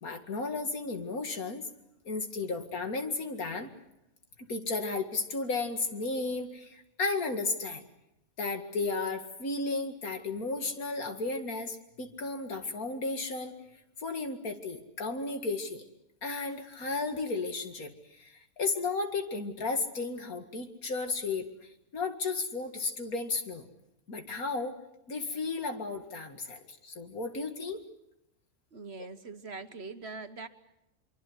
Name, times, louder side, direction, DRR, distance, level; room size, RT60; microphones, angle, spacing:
voice 1, 0.0-1.7 2.0-3.7 4.4-7.8 8.4-13.6 14.0-15.8 16.2-21.5 21.9-23.7 24.1-24.8 25.1-27.8, left 3 dB, 80° left, 6 dB, 2.6 m, -34 dB
voice 2, 28.7-30.5, right 4 dB, 50° right, 9 dB, 1.4 m, -42 dB
24.5 x 24.0 x 8.1 m, 0.86 s
omnidirectional pair, 1.5 m